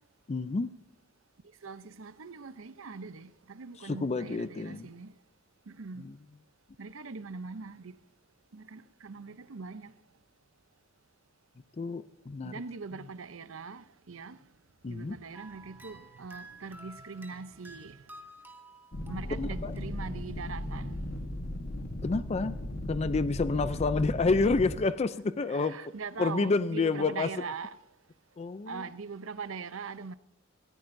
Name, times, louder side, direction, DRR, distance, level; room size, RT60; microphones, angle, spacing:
voice 1, 0.3-0.7 3.8-4.9 6.0-6.2 11.8-12.5 14.8-15.2 19.4-19.7 22.0-22.6 22.9-25.8 26.2-27.3 28.4-28.8, left 3 dB, 30° left, 0.4 m, -29 dB
voice 2, 1.6-5.1 5.7-6.1 6.8-7.9 8.5-9.9 12.4-14.4 14.9-18.0 19.1-21.1 25.5-27.7 28.7-30.2, right 4 dB, 80° right, 0.7 m, -41 dB
sound 1, 15.3-20.5, right 1 dB, 10° right, 1.6 m, -52 dB
sound 2, 18.9-24.8, left 1 dB, 50° left, 1.3 m, -36 dB
19.0 x 15.0 x 2.6 m
head